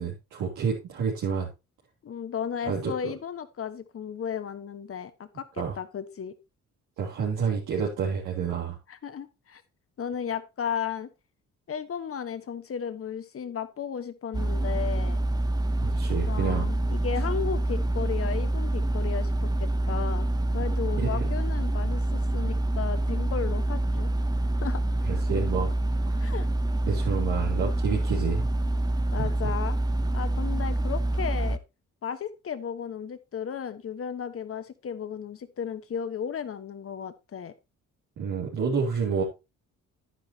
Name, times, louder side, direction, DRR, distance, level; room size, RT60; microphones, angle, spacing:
voice 1, 0.0-1.5 2.6-2.9 5.6-5.8 7.0-8.8 15.8-16.6 21.0-21.3 25.0-25.7 26.1-26.2 26.9-28.5 29.2-29.5 38.2-39.2, right 6 dB, 85° right, -4 dB, 3.1 m, -29 dB
voice 2, 2.0-6.4 8.9-9.6 10.0-11.1 11.7-15.2 16.3-20.3 20.5-24.1 24.6-24.8 26.2-26.5 29.1-29.8 30.1-31.6 32.0-37.5, left 7 dB, 50° left, 11 dB, 1.4 m, -34 dB
sound 1, 14.3-31.6, right 1 dB, 15° right, 0.8 m, -26 dB
10.5 x 9.7 x 2.9 m, 0.25 s
cardioid pair, 90°, 30 cm